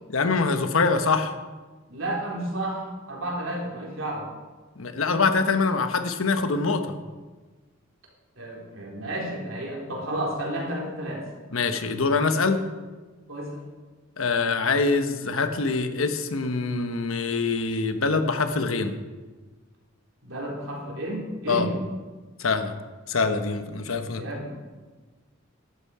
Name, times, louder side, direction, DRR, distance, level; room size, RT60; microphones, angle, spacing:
voice 1, 0.1-1.3 4.8-6.9 11.5-12.6 14.2-18.9 21.5-21.7 22.4-22.7 23.1-24.2, left 4 dB, 85° left, 7 dB, 1.2 m, -24 dB
voice 2, 1.9-4.3 8.4-11.3 13.3-13.6 20.2-21.8 24.2-24.5, right 1 dB, 70° right, -2 dB, 3.6 m, -32 dB
14.0 x 11.5 x 4.9 m, 1.3 s
head